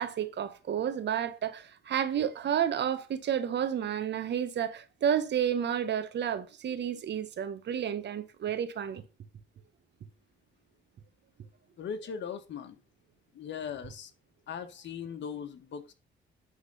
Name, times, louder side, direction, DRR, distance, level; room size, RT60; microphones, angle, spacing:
voice 1, 0.0-9.0, right 9 dB, 60° right, 1.2 m, -31 dB
voice 2, 11.8-12.8 13.3-14.1 14.5-15.9, left 7 dB, 65° left, 1.5 m, -39 dB
10.0 x 3.9 x 5.5 m
cardioid pair, 90°, 20 cm